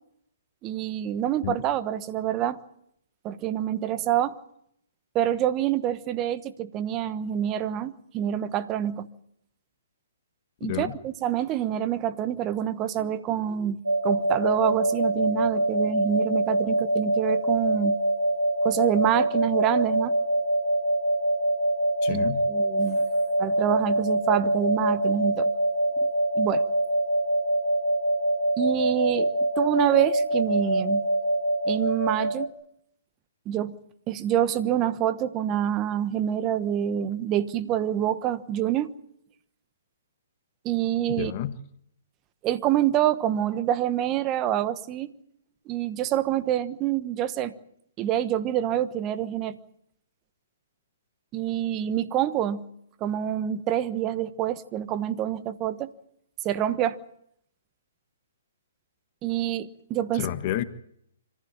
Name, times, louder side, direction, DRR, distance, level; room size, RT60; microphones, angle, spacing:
voice 1, 0.6-2.6 3.2-4.4 5.1-9.1 10.6-13.8 14.0-18.0 18.6-20.1 22.1-23.0 23.4-25.5 26.4-26.6 28.6-31.0 31.7-32.5 33.5-33.7 34.1-38.9 40.6-41.3 42.4-45.1 45.7-47.5 48.0-49.6 51.3-52.6 53.0-55.9 56.4-57.0 59.2-60.3, right 11 dB, 25° right, 1.2 m, -26 dB
voice 2, 10.6-11.0 22.0-22.5 41.1-41.6 60.1-60.6, left 12 dB, 40° left, 1.2 m, -30 dB
sound 1, 13.8-32.5, right 1 dB, 85° right, 2.9 m, -25 dB
25.5 x 15.0 x 8.6 m
figure-of-eight pair, 130°, 0 cm